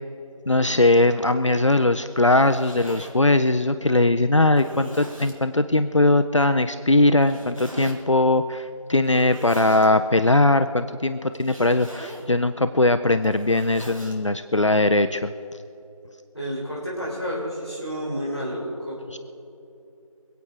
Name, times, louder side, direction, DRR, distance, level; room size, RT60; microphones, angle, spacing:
voice 1, 0.5-15.3 19.1-19.2, left 2 dB, 60° left, 10 dB, 0.6 m, -20 dB
Zipper (clothing), 2.2-3.1 3.8-3.9 4.5-5.4 7.2-8.0 9.0-9.9 11.3-12.3 13.1-14.2, right 1 dB, 65° right, 4.3 m, -40 dB
voice 2, 16.3-19.2, equal, ahead, -24 dB, 4.3 m, -30 dB
26.5 x 8.9 x 4.8 m, 2.9 s
figure-of-eight pair, 175°, 18 cm